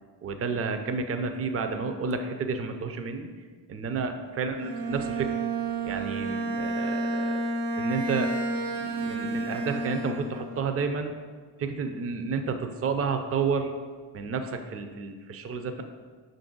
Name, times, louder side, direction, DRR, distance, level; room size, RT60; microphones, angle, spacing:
voice 1, 0.2-3.3 3.7-5.4 5.8-7.5 7.7-8.3 8.7-11.1 11.6-13.7 14.1-15.8, right 5 dB, 35° right, 7 dB, 0.4 m, -31 dB
Bowed string instrument, 4.6-10.6, right 2 dB, 75° right, 0.6 m, -30 dB
5.3 x 2.6 x 3.8 m, 1.5 s
cardioid pair, 60°, 43 cm